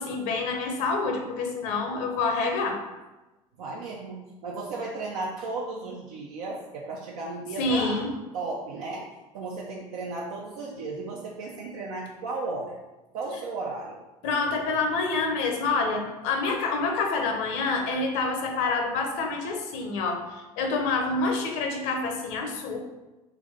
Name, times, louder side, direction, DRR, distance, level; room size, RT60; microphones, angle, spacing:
voice 1, 0.0-2.8 7.6-8.1 14.2-22.8, left 3 dB, 60° left, 2 dB, 0.8 m, -27 dB
voice 2, 3.6-8.1 8.3-9.1 9.3-12.8 13.1-14.0, right 3 dB, 70° right, -2 dB, 0.6 m, -35 dB
3.4 x 2.6 x 3.4 m, 1.1 s
hypercardioid pair, 70°, 19 cm